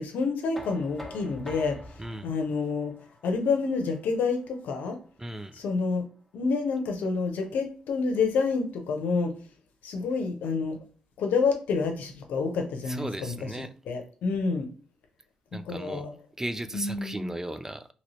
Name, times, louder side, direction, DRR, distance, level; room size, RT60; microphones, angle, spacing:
voice 1, 0.0-5.0 5.5-6.0 6.3-9.3 9.8-10.8 11.2-14.7 15.6-16.1 16.7-17.3, left 4 dB, 80° left, 0.7 m, -28 dB
Knock, 0.5-6.3, left 1 dB, ahead, 1.0 m, -47 dB
voice 2, 5.2-5.6 12.9-13.7 15.5-16.1 16.4-17.9, right 1 dB, 15° right, 0.4 m, -36 dB
2.9 x 2.7 x 3.0 m
supercardioid pair, 50°, 3 cm